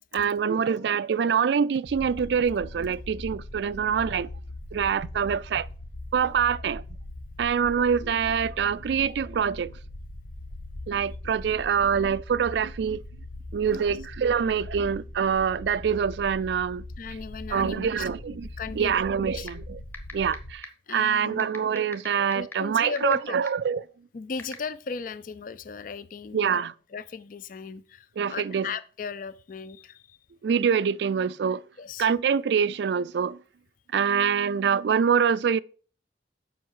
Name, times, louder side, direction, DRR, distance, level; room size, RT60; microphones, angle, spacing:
voice 1, 0.1-4.3 4.7-5.7 6.1-6.8 7.4-9.7 10.9-13.0 13.5-16.8 17.5-18.5 18.8-19.8 20.1-23.8 26.3-26.7 28.2-28.7 30.4-31.6 32.0-33.4 33.9-35.6, right 7 dB, 70° right, 0.3 m, -25 dB
sound 1, 1.9-20.5, left 1 dB, 90° left, 1.3 m, -41 dB
voice 2, 17.0-18.1 18.6-19.5 20.9-21.5 22.3-23.4 24.1-30.2 31.8-32.1, left 5 dB, 50° left, 0.4 m, -37 dB
sound 2, 19.5-19.6 19.9-20.4 20.6-20.7 21.4-23.1 23.5-23.6 24.4-24.6, left 1 dB, 10° left, 1.1 m, -36 dB
7.7 x 5.6 x 5.4 m
head